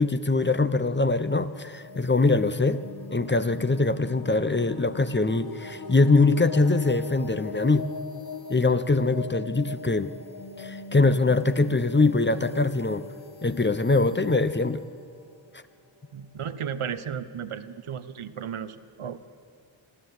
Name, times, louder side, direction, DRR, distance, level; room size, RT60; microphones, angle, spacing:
voice 1, 0.0-2.8 3.1-7.9 8.5-10.1 10.6-13.0 13.4-14.8, left 3 dB, 20° left, 12 dB, 0.7 m, -23 dB
sound 1, 1.6-16.3, left 4 dB, 45° left, 1.4 m, -41 dB
voice 2, 16.1-19.2, right 8 dB, 80° right, 12 dB, 0.9 m, -34 dB
26.0 x 12.5 x 8.0 m, 2.3 s
wide cardioid pair, 55°, 49 cm